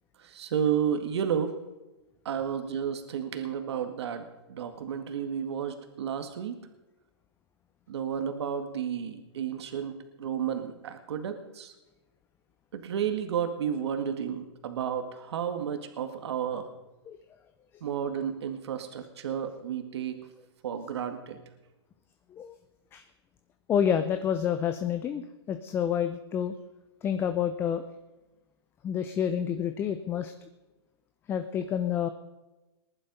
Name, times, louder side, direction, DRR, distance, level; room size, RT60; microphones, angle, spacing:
voice 1, 0.2-1.5 2.3-6.6 7.9-11.7 12.7-16.7 17.8-20.2 20.6-21.4, right 8 dB, 65° right, 7 dB, 2.0 m, -32 dB
voice 2, 23.7-26.6 27.0-27.8 28.8-30.3 31.3-32.1, left 8 dB, 15° left, 9 dB, 0.6 m, -28 dB
20.5 x 11.0 x 5.4 m, 1.1 s
hypercardioid pair, 150°, 15 cm